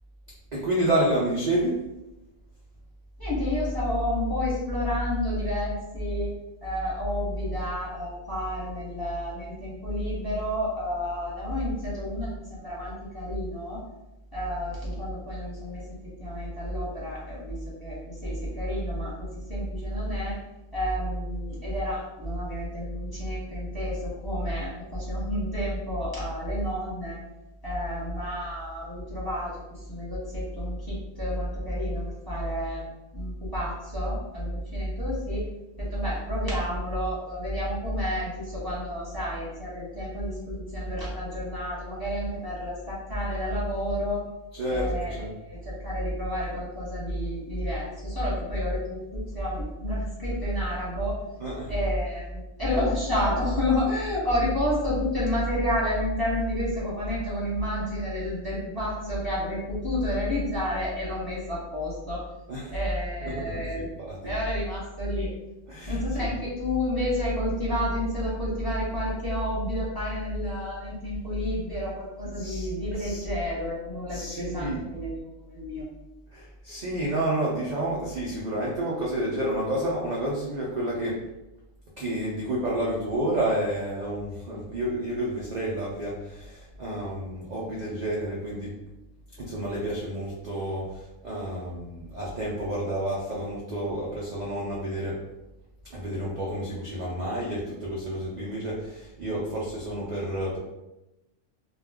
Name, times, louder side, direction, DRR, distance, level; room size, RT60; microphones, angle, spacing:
voice 1, 0.5-1.8 44.5-45.4 51.4-51.7 62.5-62.8 63.2-64.4 65.7-66.3 72.2-72.7 72.9-73.3 74.1-74.9 76.3-81.2 82.0-88.8 89.4-95.2 95.9-100.6, right 1 dB, 60° right, -5 dB, 0.4 m, -30 dB
voice 2, 3.2-6.3 6.6-13.8 14.3-20.4 20.7-27.2 27.6-32.9 33.1-35.4 35.8-44.2 44.7-51.2 51.7-62.2 62.7-63.9 64.2-65.3 65.9-75.1 75.4-75.8, equal, 20° left, -8 dB, 1.0 m, -30 dB
2.3 x 2.2 x 3.4 m, 0.96 s
omnidirectional pair, 1.3 m